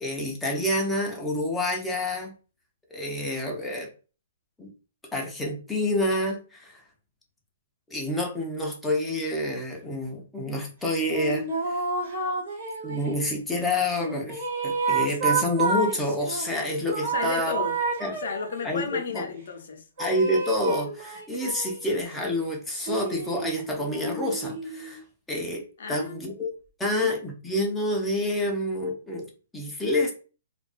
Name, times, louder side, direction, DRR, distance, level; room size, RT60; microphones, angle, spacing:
voice 1, 0.0-2.3 2.9-3.9 4.6-4.7 5.1-6.8 7.9-11.8 12.8-17.6 18.0-18.2 18.6-19.3 20.0-25.0 25.3-26.5 26.8-29.3 29.5-30.1, left 1 dB, 5° left, 0.5 m, -28 dB
sound 1, 11.1-13.4 14.0-16.5 16.9-18.8 20.0-21.9 22.7-25.0, right 4 dB, 50° right, 0.9 m, -30 dB
voice 2, 17.0-17.7 18.1-19.8 25.8-26.3 27.0-27.1, left 5 dB, 70° left, 0.6 m, -33 dB
2.3 x 2.3 x 2.4 m
hypercardioid pair, 160°, 0 cm